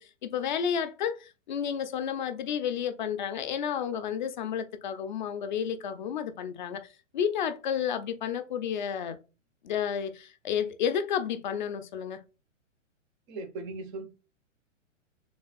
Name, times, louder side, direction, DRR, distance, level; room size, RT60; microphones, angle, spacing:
voice 1, 0.0-6.9 7.1-9.2 9.6-12.2, left 8 dB, 40° left, 0.5 m, -31 dB
voice 2, 13.3-14.1, right 3 dB, 20° right, 0.5 m, -38 dB
3.5 x 3.4 x 3.9 m
figure-of-eight pair, 110°, 39 cm